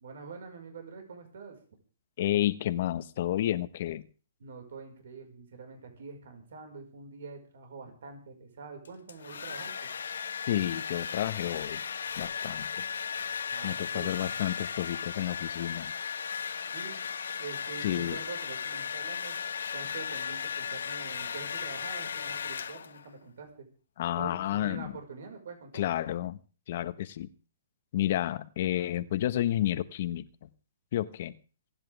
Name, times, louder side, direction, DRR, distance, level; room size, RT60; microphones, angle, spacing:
voice 1, 0.0-1.6 4.4-9.7 13.5-14.4 16.7-17.0 17.4-19.4 19.7-23.7 24.2-25.8, right 5 dB, 70° right, 4 dB, 5.2 m, -45 dB
voice 2, 2.2-4.1 10.5-11.8 12.2-12.7 13.6-15.9 17.8-18.2 24.0-24.9 25.7-26.4 26.7-27.3 27.9-30.5 30.9-31.3, left 12 dB, 50° left, 13 dB, 1.3 m, -30 dB
Domestic sounds home sounds, 8.8-23.1, left 6 dB, 85° left, 1.5 m, -36 dB
27.5 x 10.5 x 3.5 m, 0.38 s
hypercardioid pair, 150°, 0 cm